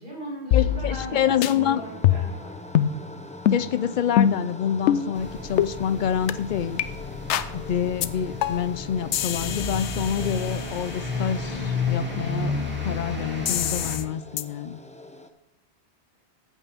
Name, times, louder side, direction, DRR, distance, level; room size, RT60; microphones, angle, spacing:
voice 1, 0.0-2.6, equal, 50° right, -7 dB, 4.7 m, -37 dB
sound 1, 0.5-1.1 1.4-1.5 2.0-2.4 2.7-2.9 3.5-3.6 4.2-4.5 4.9-5.0 5.6-5.7 6.3-6.4 6.8-6.9 7.3-7.5 8.0-8.1 8.4-8.7 9.1-11.0 13.5-14.0 14.4-14.5, left 10 dB, 90° left, 0.9 m, -24 dB
voice 2, 0.5-1.8 3.5-6.8 7.5-14.8, left 9 dB, 55° left, 16 dB, 0.6 m, -27 dB
sound 2, 0.5-15.3, left 2 dB, 5° left, 0.7 m, -42 dB
sound 3, 5.1-14.0, left 3 dB, 10° right, 2.3 m, -32 dB
14.0 x 8.4 x 3.5 m, 0.96 s
omnidirectional pair, 1.1 m